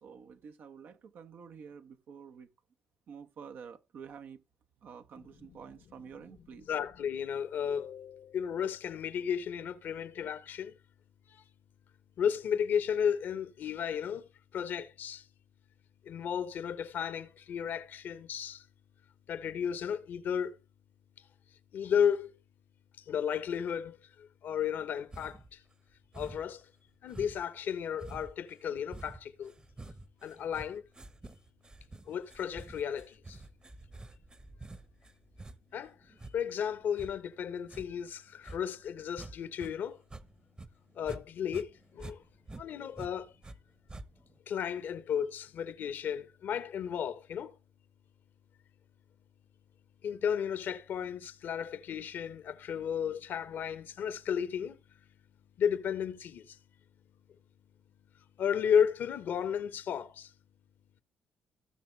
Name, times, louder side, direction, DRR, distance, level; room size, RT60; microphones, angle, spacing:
voice 1, 0.0-2.5 3.1-4.4 4.8-6.7, right 6 dB, 60° right, 0.9 m, -49 dB
voice 2, 6.7-10.7 11.3-11.4 12.2-14.2 14.5-15.2 16.1-18.6 19.3-20.5 21.7-22.3 23.1-25.6 26.1-26.6 27.0-29.5 30.2-30.8 32.1-33.4 35.7-35.9 36.3-40.0 41.0-42.2 42.6-43.3 44.5-47.5 50.0-54.8 55.6-56.6 58.4-60.3, left 8 dB, 65° left, 1.0 m, -33 dB
sound 1, 25.1-25.5 26.1-26.6 27.1-39.7 40.0-41.2 41.5-43.6 43.9-44.4, right 2 dB, 25° right, 1.1 m, -48 dB
16.5 x 5.9 x 3.2 m
hypercardioid pair, 50°, 4 cm